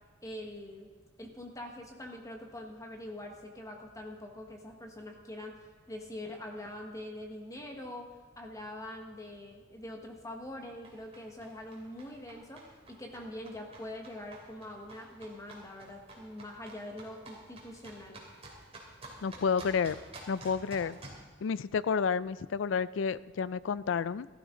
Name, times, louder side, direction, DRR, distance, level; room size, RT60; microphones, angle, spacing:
voice 1, 0.2-0.9 1.2-18.2, left 1 dB, 15° left, 2 dB, 1.4 m, -44 dB
sound 1, 10.8-21.2, right 2 dB, 30° right, 2.8 m, -51 dB
voice 2, 19.2-20.0 20.3-21.0 21.4-24.3, left 6 dB, 70° left, 18 dB, 0.4 m, -30 dB
14.5 x 13.0 x 3.8 m, 1.4 s
head